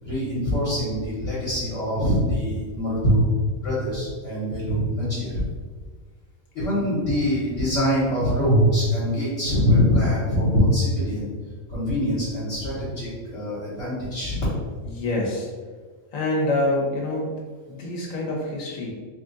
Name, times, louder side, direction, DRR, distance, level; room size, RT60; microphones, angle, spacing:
voice 1, 0.0-3.3 3.6-5.4 6.5-11.3 11.7-14.4, equal, 60° left, -10 dB, 1.5 m, -23 dB
voice 2, 14.8-15.5 16.1-17.3 17.7-18.9, left 2 dB, 85° left, -3 dB, 1.3 m, -26 dB
3.4 x 2.4 x 3.8 m, 1.5 s
omnidirectional pair, 1.3 m